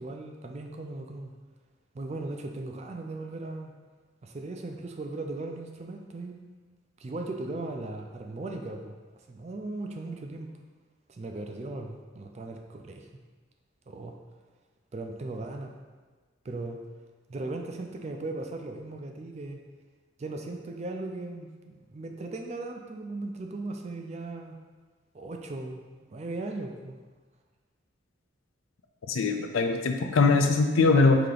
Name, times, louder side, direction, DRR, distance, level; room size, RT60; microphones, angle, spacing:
voice 1, 0.0-1.3 1.9-3.7 4.2-6.4 7.0-9.0 9.3-10.5 11.1-13.1 13.9-14.2 14.9-15.7 16.4-16.8 17.3-19.6 20.2-24.5 25.1-27.0, right 2 dB, 35° right, 4 dB, 0.3 m, -37 dB
voice 2, 29.1-31.2, left 3 dB, 85° left, 5 dB, 0.5 m, -22 dB
4.9 x 2.8 x 3.9 m, 1.4 s
head